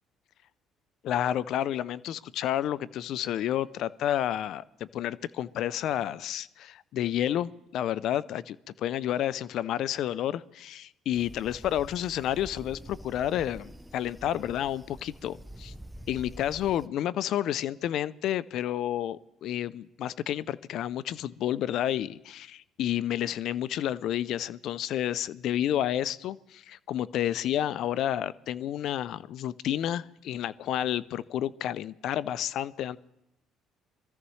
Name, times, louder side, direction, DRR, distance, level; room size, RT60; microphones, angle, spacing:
voice 1, 1.0-4.6 4.9-15.7 16.1-33.0, left 11 dB, 70° left, 18 dB, 0.4 m, -30 dB
sound 1, 11.1-16.9, equal, 10° right, 0.6 m, -46 dB
24.5 x 14.0 x 3.2 m, 0.85 s
supercardioid pair, 65°, 0 cm